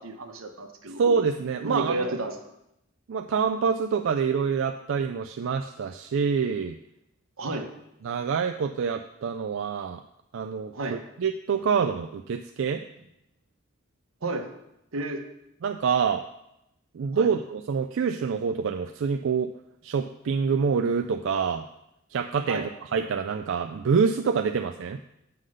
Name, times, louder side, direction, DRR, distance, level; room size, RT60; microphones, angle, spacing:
voice 1, 0.0-1.0 1.6-2.4 7.4-7.7 10.7-11.0 14.2-14.5 14.9-15.2 17.1-17.3 22.5-22.7, right 2 dB, 85° right, 5 dB, 1.0 m, -31 dB
voice 2, 1.0-2.1 3.1-6.8 8.0-10.0 10.3-12.8 15.6-16.2 16.9-19.5 19.8-21.6 22.1-22.6 22.9-25.0, right 6 dB, 65° right, 5 dB, 0.4 m, -26 dB
7.8 x 3.8 x 6.3 m, 0.83 s
head